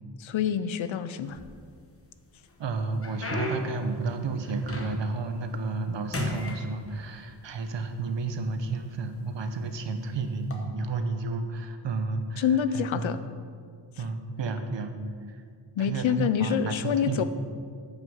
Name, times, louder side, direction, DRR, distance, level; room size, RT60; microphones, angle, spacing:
voice 1, 0.2-1.4 12.4-13.2 15.8-17.2, left 8 dB, 85° left, 12 dB, 0.7 m, -26 dB
sound 1, 1.3-2.0 2.5-5.2 5.6-5.9 6.1-7.4 8.2-8.3 9.0-9.2 10.4-10.6, left 2 dB, 30° left, 1.1 m, -35 dB
voice 2, 2.6-12.4 12.7-13.1 14.0-14.9 15.3-15.4 15.8-17.2, right 3 dB, 70° right, 7 dB, 1.0 m, -31 dB
9.5 x 5.7 x 7.1 m, 2.1 s
wide cardioid pair, 170°, 45 cm